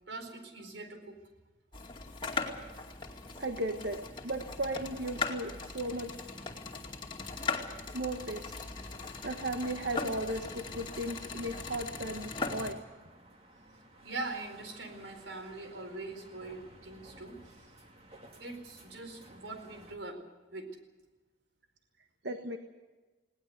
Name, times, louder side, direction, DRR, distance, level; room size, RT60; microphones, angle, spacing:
voice 1, 0.1-1.2 14.0-17.6 18.4-20.2 20.5-20.8, right 2 dB, 80° right, 6 dB, 4.4 m, -42 dB
sound 1, 1.7-12.7, left 4 dB, 25° left, 2.3 m, -39 dB
voice 2, 3.4-6.2 7.9-8.5 9.0-12.8 22.2-22.6, right 1 dB, 65° right, 5 dB, 1.4 m, -36 dB
sound 2, 8.1-20.0, right 1 dB, 30° right, 2.5 m, -57 dB
20.0 x 18.5 x 8.1 m, 1.2 s
head